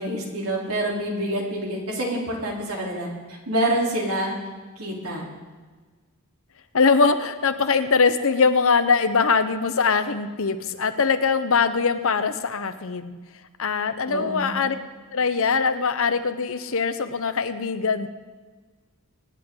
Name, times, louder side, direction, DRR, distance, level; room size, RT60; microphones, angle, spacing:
voice 1, 0.0-4.4 4.8-5.3 14.1-14.7, right 1 dB, 70° right, -2 dB, 3.5 m, -27 dB
voice 2, 6.7-13.1 13.6-14.7 15.1-18.1, left 5 dB, 65° left, 10 dB, 0.9 m, -22 dB
25.0 x 9.9 x 3.8 m, 1.4 s
head